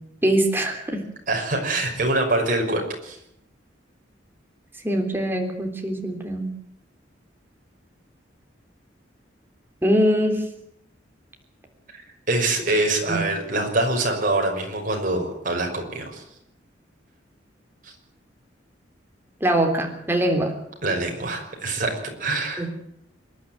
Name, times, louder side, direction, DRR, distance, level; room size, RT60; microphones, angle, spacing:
voice 1, 0.2-1.0 4.8-6.5 9.8-10.4 13.1-13.2 19.4-20.6 22.6-22.7, right 1 dB, 10° right, 2 dB, 3.4 m, -22 dB
voice 2, 1.3-3.2 11.9-12.0 12.3-16.2 17.8-17.9 20.8-22.6, right 2 dB, 45° right, 1 dB, 6.0 m, -24 dB
26.5 x 11.0 x 9.3 m, 0.75 s
head